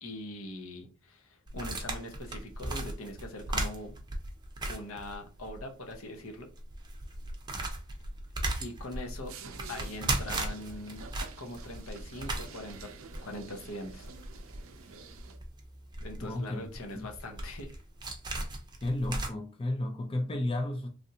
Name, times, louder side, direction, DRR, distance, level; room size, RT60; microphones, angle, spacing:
voice 1, 0.0-4.0 4.7-6.5 8.6-9.3 9.7-11.1 11.4-14.1 16.0-17.8, left 1 dB, 75° left, 0.8 m, -42 dB
sound 1, 1.5-5.6 5.9-6.0 6.5-19.3, right 2 dB, 20° right, 0.6 m, -37 dB
sound 2, 9.3-15.4, right 4 dB, 70° right, 0.5 m, -48 dB
voice 2, 16.2-16.7 16.9-17.1 18.8-20.9, left 1 dB, 25° left, 0.4 m, -32 dB
3.3 x 2.5 x 2.7 m
head